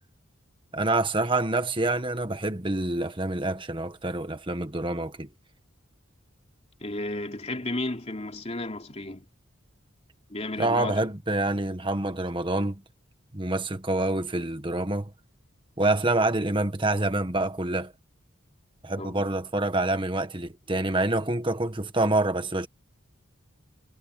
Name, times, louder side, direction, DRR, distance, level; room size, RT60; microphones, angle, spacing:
voice 1, 0.7-5.3 10.6-12.8 13.3-15.1 15.8-17.9 18.8-22.7, right 2 dB, 25° right, 1.6 m, -27 dB
voice 2, 6.8-9.2 10.3-11.1 19.0-19.3, left 2 dB, 30° left, 3.3 m, -33 dB
head